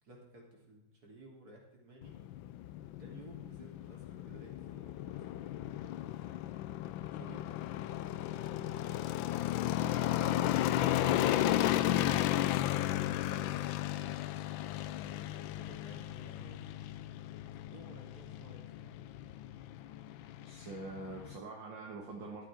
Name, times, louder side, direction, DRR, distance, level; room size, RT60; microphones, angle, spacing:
voice 1, 0.0-2.2 3.0-5.8 6.9-7.5 8.0-9.0 9.8-13.7 14.9-16.8 17.5-18.9, right 2 dB, 50° right, -1 dB, 3.8 m, -56 dB
sound 1, 2.0-21.4, left 13 dB, 90° left, 1.4 m, -34 dB
voice 2, 20.4-22.4, right 3 dB, 70° right, 0 dB, 2.3 m, -44 dB
12.0 x 10.0 x 5.0 m, 0.89 s
omnidirectional pair, 2.1 m